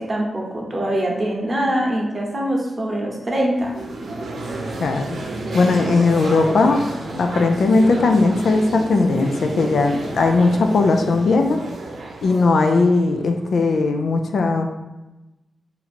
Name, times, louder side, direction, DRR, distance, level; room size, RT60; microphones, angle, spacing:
voice 1, 0.0-3.7, right 1 dB, 30° right, -2 dB, 0.8 m, -23 dB
sound 1, 3.6-13.6, right 2 dB, 85° right, 0.6 m, -31 dB
voice 2, 5.5-6.8 7.2-11.6 12.2-14.7, left 3 dB, 80° left, 5 dB, 0.3 m, -18 dB
2.9 x 2.6 x 4.1 m, 1.0 s
wide cardioid pair, 90°, 0 cm